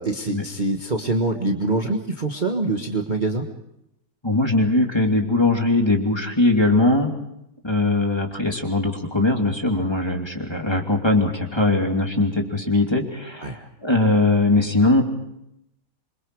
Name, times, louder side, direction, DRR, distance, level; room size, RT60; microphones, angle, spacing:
voice 1, 0.0-3.4 13.4-13.6, right 2 dB, 30° right, 2 dB, 1.6 m, -24 dB
voice 2, 4.2-7.1 7.6-15.0, left 2 dB, 15° left, 1 dB, 2.9 m, -20 dB
27.5 x 24.5 x 4.8 m, 0.82 s
omnidirectional pair, 1.9 m